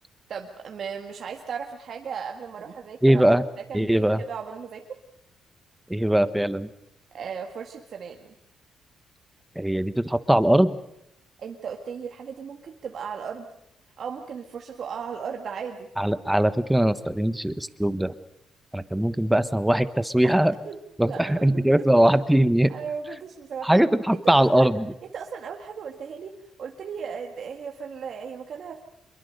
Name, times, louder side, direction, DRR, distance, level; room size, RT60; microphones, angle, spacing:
voice 1, 0.3-3.3 3.7-5.0 7.1-8.3 11.4-13.5 14.0-15.9 20.2-20.3 20.7-21.9 22.7-23.8 24.2-24.7 25.1-28.8, right 6 dB, 60° right, 2 dB, 1.9 m, -36 dB
voice 2, 3.0-3.4 3.7-4.2 5.9-6.7 9.5-10.8 16.0-18.1 18.7-20.5 21.0-22.7 23.6-24.9, right 1 dB, 5° right, 12 dB, 1.3 m, -21 dB
25.5 x 22.5 x 6.7 m, 0.82 s
cardioid pair, 90°, 0 cm